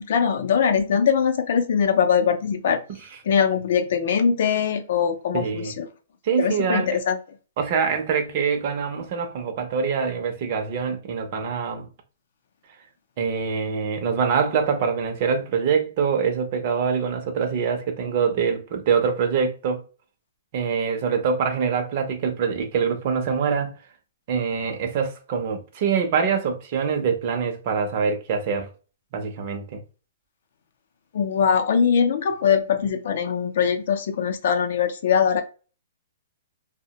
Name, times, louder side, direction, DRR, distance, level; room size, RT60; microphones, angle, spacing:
voice 1, 0.0-2.8 3.3-5.8 6.4-7.2 31.1-35.4, left 7 dB, 55° left, 0.5 m, -22 dB
voice 2, 5.3-5.8 6.2-7.0 7.6-11.9 13.2-19.8 20.5-23.8 24.3-28.7 29.1-29.8, right 6 dB, 35° right, 0.6 m, -24 dB
2.8 x 2.1 x 2.8 m
hypercardioid pair, 170°, 0 cm